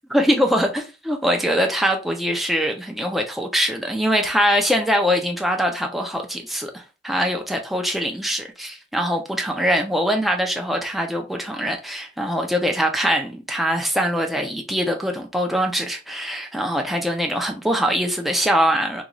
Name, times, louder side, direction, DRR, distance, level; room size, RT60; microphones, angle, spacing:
voice 1, 0.1-19.0, equal, ahead, 0.5 m, -23 dB
3.0 x 2.4 x 3.7 m
head